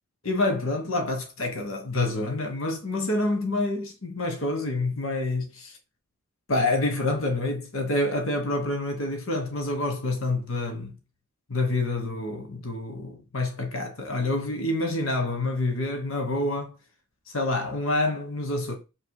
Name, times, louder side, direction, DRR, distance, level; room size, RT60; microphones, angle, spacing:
voice 1, 0.2-5.7 6.5-10.9 11.5-16.7 17.3-18.8, left 2 dB, 65° left, 1.4 m, -27 dB
6.6 x 3.0 x 4.8 m
head